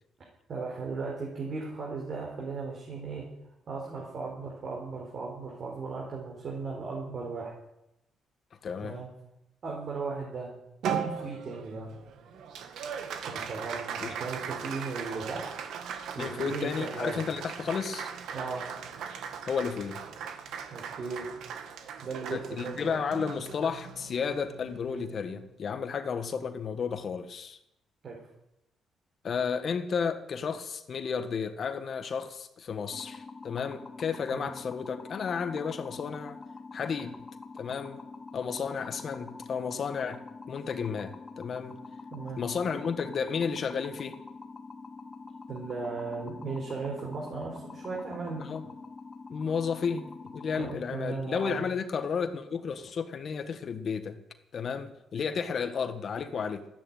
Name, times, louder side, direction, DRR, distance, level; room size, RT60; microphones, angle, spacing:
voice 1, 0.5-3.2 3.7-7.5 8.8-9.1 9.6-10.5 10.9-11.9 13.2-15.5 16.1-17.2 18.3-18.6 20.7-21.3 22.0-23.0 28.0-28.2 34.3-34.5 42.1-42.4 45.5-48.4 50.6-51.7, right 4 dB, 55° right, -2 dB, 4.9 m, -36 dB
voice 2, 8.6-9.0 14.0-14.1 16.2-18.1 19.5-20.0 22.3-27.6 29.2-36.4 36.7-37.1 37.5-38.0 38.3-40.2 40.5-41.8 42.4-44.2 48.4-48.6 49.3-50.0 50.3-54.2 54.5-56.7, left 6 dB, 50° left, 8 dB, 1.5 m, -32 dB
Applause, 10.8-25.5, right 7 dB, 80° right, 1.9 m, -39 dB
sound 1, 32.9-50.7, left 4 dB, 25° left, 1.4 m, -45 dB
13.5 x 10.5 x 9.2 m, 0.85 s
cardioid pair, 90°, 0 cm